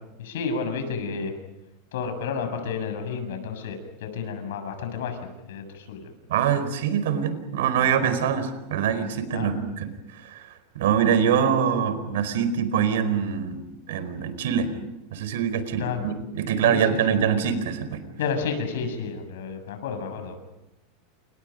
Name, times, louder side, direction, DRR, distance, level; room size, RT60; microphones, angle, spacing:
voice 1, 0.2-1.3 1.9-5.2 5.5-6.1 9.3-9.5 15.8-16.0 16.6-16.8 17.1-17.2 18.2-20.4, left 5 dB, 80° left, 6 dB, 7.3 m, -31 dB
voice 2, 6.3-10.5 10.7-13.6 13.9-14.7 15.1-18.0, right 8 dB, 80° right, 11 dB, 4.6 m, -24 dB
29.5 x 29.0 x 5.3 m, 0.92 s
supercardioid pair, 170°, 0 cm